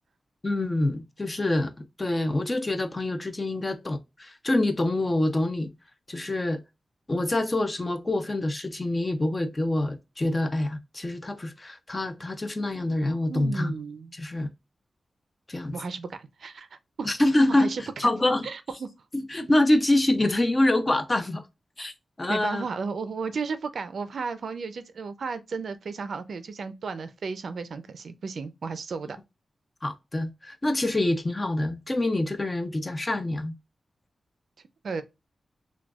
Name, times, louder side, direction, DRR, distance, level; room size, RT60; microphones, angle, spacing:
voice 1, 0.4-1.7 2.0-5.7 6.1-6.6 7.1-13.7 14.1-14.5 15.5-15.8 17.0-17.7 18.0-18.5 19.1-21.4 21.8-21.9 22.2-22.6 29.8-33.5, left 1 dB, 20° left, 0.5 m, -26 dB
voice 2, 13.3-14.1 15.7-16.7 17.0-17.1 17.5-17.8 18.4-18.9 22.3-29.2 34.8-35.0, right 5 dB, 65° right, 0.5 m, -34 dB
6.0 x 2.3 x 2.3 m
wide cardioid pair, 180°, 0 cm